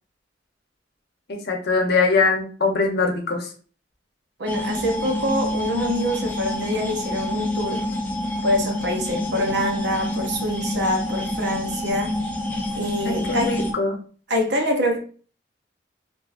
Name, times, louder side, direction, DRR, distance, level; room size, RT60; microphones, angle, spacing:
voice 1, 1.3-3.5 13.0-14.0, left 4 dB, 60° left, 0.8 m, -22 dB
voice 2, 4.4-7.8 8.4-12.1 12.7-13.5 14.3-15.0, equal, 60° right, 0.7 m, -25 dB
sound 1, 4.5-13.7, left 1 dB, 10° left, 0.5 m, -27 dB
3.6 x 2.6 x 2.5 m
head